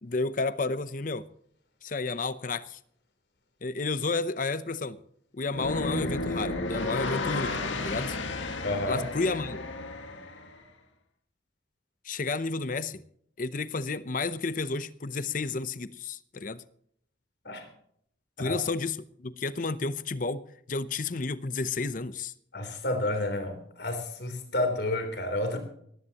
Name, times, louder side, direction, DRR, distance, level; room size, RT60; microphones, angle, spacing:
voice 1, 0.0-1.3 1.8-2.8 3.6-5.0 5.3-7.6 7.8-8.2 8.9-9.7 12.0-13.0 13.4-16.6 18.4-22.3, left 3 dB, 45° left, 0.7 m, -31 dB
sound 1, 5.5-10.6, left 2 dB, 85° left, 1.8 m, -32 dB
voice 2, 8.6-9.0 17.4-17.7 18.4-18.6 22.5-25.6, left 1 dB, 60° left, 3.4 m, -30 dB
19.0 x 15.5 x 2.9 m
head